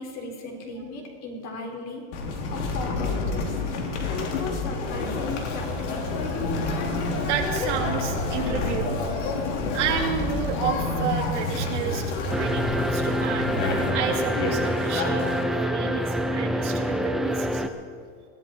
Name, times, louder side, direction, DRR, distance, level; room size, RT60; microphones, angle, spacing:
voice 1, 0.0-2.0 2.5-3.6 4.0-6.3, left 3 dB, 45° left, 2 dB, 3.9 m, -36 dB
sound 1, 2.1-15.4, left 3 dB, 80° left, 3.0 m, -30 dB
Conversation, 4.8-13.9, left 3 dB, 65° left, 3.5 m, -31 dB
voice 2, 7.3-9.0 9.7-13.5 13.9-17.6, right 7 dB, 90° right, 1 dB, 2.8 m, -30 dB
sound 2, 12.3-17.7, equal, ahead, 0.5 m, -26 dB
20.5 x 14.5 x 4.4 m, 2.1 s
supercardioid pair, 140°, 35 cm